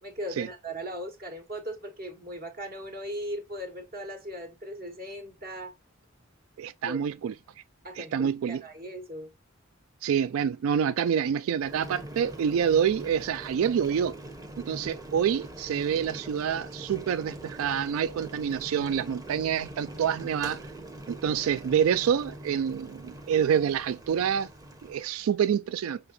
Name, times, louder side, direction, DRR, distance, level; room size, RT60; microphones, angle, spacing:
voice 1, 0.0-5.7 6.8-7.1 7.8-9.3, equal, 50° right, 1.5 m, -38 dB
voice 2, 6.6-7.3 8.0-8.6 10.0-14.2 14.6-20.6 21.1-24.5 24.8-26.0, right 8 dB, 85° right, 0.3 m, -27 dB
Boiling, 11.6-25.1, right 1 dB, 15° right, 0.8 m, -43 dB
6.5 x 2.9 x 2.6 m
head